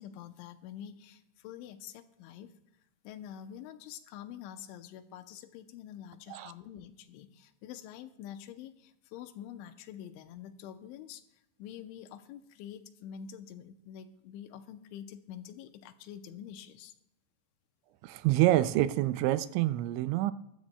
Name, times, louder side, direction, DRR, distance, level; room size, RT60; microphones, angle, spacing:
voice 1, 0.0-2.5 3.0-16.9, left 10 dB, 85° left, 10 dB, 3.1 m, -46 dB
voice 2, 18.0-20.3, right 15 dB, 85° right, 13 dB, 2.8 m, -27 dB
21.0 x 12.5 x 2.3 m, 0.87 s
omnidirectional pair, 5.4 m